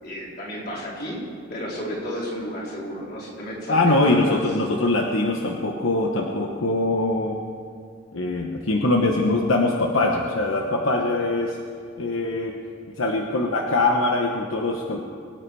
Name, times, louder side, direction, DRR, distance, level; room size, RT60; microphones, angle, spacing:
voice 1, 0.0-1.2 1.5-4.4, equal, 50° left, -5 dB, 4.2 m, -32 dB
voice 2, 3.7-7.4 8.1-11.6 12.0-12.5 13.0-15.0, left 2 dB, 80° left, 1 dB, 1.1 m, -22 dB
23.0 x 9.1 x 4.8 m, 2.3 s
head